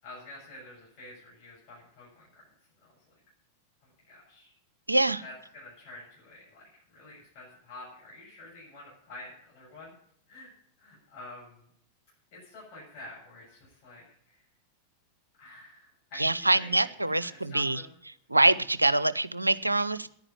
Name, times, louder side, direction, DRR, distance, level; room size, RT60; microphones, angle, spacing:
voice 1, 0.0-3.2 3.8-4.5 5.2-9.9 10.3-10.5 10.8-11.7 12.3-14.4 15.4-18.0, left 2 dB, 45° left, -5 dB, 7.6 m, -49 dB
voice 2, 4.9-5.2 16.2-17.8 18.3-20.1, right 2 dB, 85° right, 17 dB, 0.5 m, -24 dB
10.5 x 9.8 x 9.6 m, 0.65 s
figure-of-eight pair, 90°, 0 cm